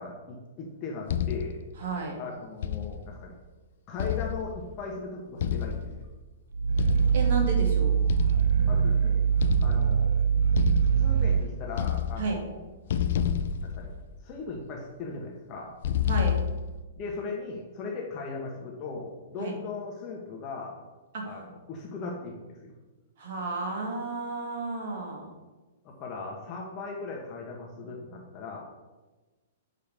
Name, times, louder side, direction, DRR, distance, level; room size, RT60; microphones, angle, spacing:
voice 1, 0.0-1.6 2.2-3.3 3.9-6.1 8.7-9.3 9.6-10.1 11.0-12.6 13.6-13.9 14.2-15.8 17.0-20.8 21.2-22.7 25.8-28.6, left 4 dB, 35° left, -1 dB, 1.4 m, -38 dB
sound 1, 1.1-1.7 2.6-3.2 4.0-4.8 5.4-6.2 6.8-7.4 8.1-8.9 9.4-10.1 10.6-11.4 11.7-12.5 12.9-14.4 15.8-16.8, left 8 dB, 65° left, 0.6 m, -30 dB
voice 2, 1.8-2.2 7.1-7.9 12.2-12.4 16.1-16.4 19.4-19.6 21.1-21.3 23.2-25.3, right 3 dB, 60° right, 0 dB, 2.5 m, -32 dB
Growling, 6.5-11.5, right 7 dB, 80° right, 0.8 m, -23 dB
6.7 x 5.1 x 6.7 m, 1.2 s
hypercardioid pair, 135°, 0 cm